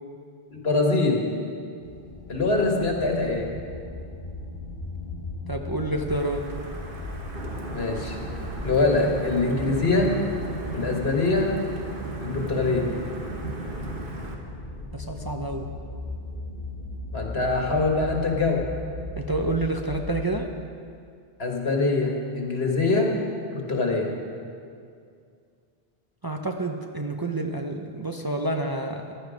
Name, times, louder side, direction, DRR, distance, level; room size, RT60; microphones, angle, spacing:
voice 1, 0.5-1.2 2.3-3.5 7.7-8.2 8.6-10.1 10.7-11.5 12.2-12.9 17.1-18.6 21.4-23.1 23.5-24.1, left 3 dB, 80° left, 0 dB, 2.0 m, -23 dB
sound 1, 1.8-20.2, left 2 dB, 55° left, 1.8 m, -38 dB
voice 2, 5.5-6.4 14.9-15.7 19.2-20.5 26.2-29.0, right 2 dB, 25° right, 3 dB, 0.6 m, -28 dB
Wind / Thunder / Rain, 6.1-14.3, right 2 dB, 60° right, 1.5 m, -35 dB
15.5 x 11.0 x 5.1 m, 2.3 s
omnidirectional pair, 1.0 m